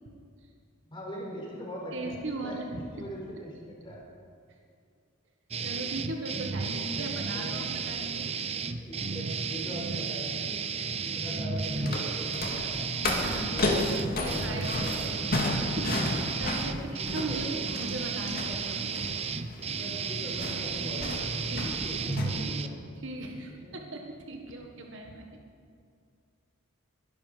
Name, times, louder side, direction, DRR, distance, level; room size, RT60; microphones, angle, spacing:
voice 1, 0.9-2.1 2.4-4.0 6.7-7.9 8.8-10.6 11.0-12.9 13.4-13.8 14.1-15.6 16.8-17.6 19.8-22.8 23.5-23.8 24.5-24.7, equal, 25° left, -3 dB, 4.3 m, -41 dB
voice 2, 1.9-3.1 5.6-8.3 8.8-8.9 9.9-10.0 13.2-13.6 14.2-15.4 15.8-17.5 17.8-19.2 21.5-21.7 23.0-25.2, right 2 dB, 65° right, 2 dB, 1.6 m, -38 dB
sound 1, 5.5-22.7, right 5 dB, 30° right, 0.7 m, -33 dB
sound 2, 11.6-22.2, left 2 dB, 45° left, 2.2 m, -33 dB
22.0 x 12.0 x 5.1 m, 2.3 s
head